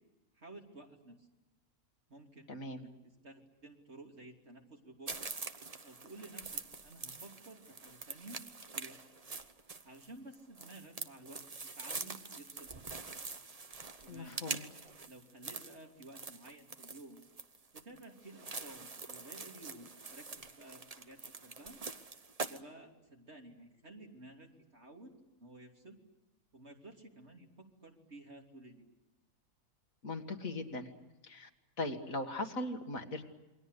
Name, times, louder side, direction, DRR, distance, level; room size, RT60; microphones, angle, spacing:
voice 1, 0.3-1.3 2.1-5.1 5.8-8.4 8.7-9.0 9.8-11.4 11.7-13.0 14.0-14.4 15.1-17.3 17.7-21.8 22.5-25.1 25.4-26.0 26.5-28.9, right 2 dB, 45° right, 1 dB, 3.4 m, -53 dB
voice 2, 2.5-2.9 14.1-14.6 30.0-30.9 31.2-31.5 31.8-33.3, left 2 dB, 65° left, 5 dB, 2.3 m, -39 dB
sound 1, 5.1-22.6, right 4 dB, 30° right, 1.0 m, -45 dB
28.5 x 23.0 x 8.2 m, 1.1 s
omnidirectional pair, 1.6 m